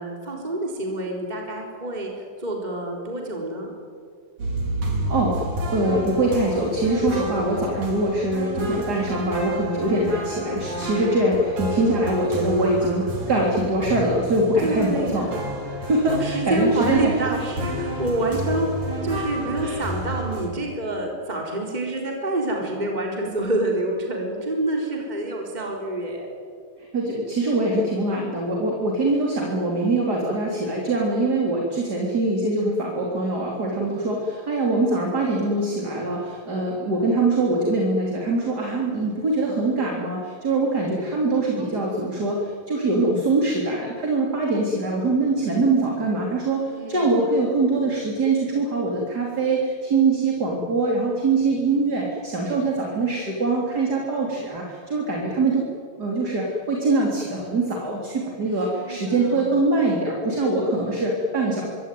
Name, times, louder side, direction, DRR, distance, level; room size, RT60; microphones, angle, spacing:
voice 1, 0.0-3.7 12.2-13.2 14.6-26.3 41.2-42.1 46.7-47.2 58.6-59.6, right 2 dB, 15° right, 0 dB, 4.0 m, -28 dB
sound 1, 4.4-20.5, equal, 75° right, 6.0 m, -30 dB
voice 2, 5.1-5.5 5.7-15.3 15.6-17.1 19.6-19.8 26.8-55.6 56.0-61.7, right 2 dB, 30° right, -2 dB, 4.0 m, -23 dB
26.0 x 24.0 x 9.4 m, 2.2 s
omnidirectional pair, 3.4 m